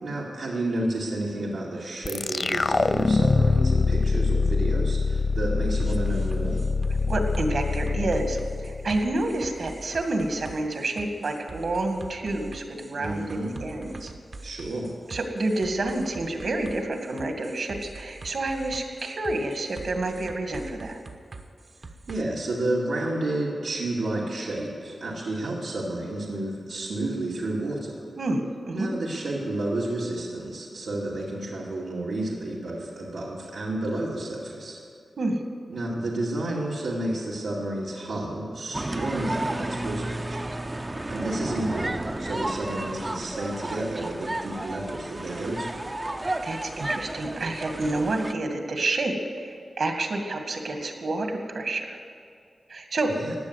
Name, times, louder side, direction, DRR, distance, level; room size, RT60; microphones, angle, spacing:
voice 1, 0.0-6.6 12.9-13.6 14.4-14.9 22.1-28.0 28.7-34.8 35.7-40.5 41.1-45.8 53.1-53.3, right 1 dB, 90° right, -5 dB, 2.4 m, -31 dB
sound 1, 2.0-9.3, left 4 dB, 40° left, 0.3 m, -24 dB
sound 2, 5.8-22.2, right 3 dB, 45° right, 1.0 m, -43 dB
voice 2, 7.0-14.1 15.1-21.0 28.2-28.9 35.2-35.4 46.4-52.0 52.7-53.1, right 2 dB, 65° right, 5 dB, 2.0 m, -29 dB
sound 3, 38.7-48.3, right 1 dB, 20° right, 0.6 m, -32 dB
16.5 x 10.0 x 8.2 m, 2.3 s
wide cardioid pair, 130°, 0 cm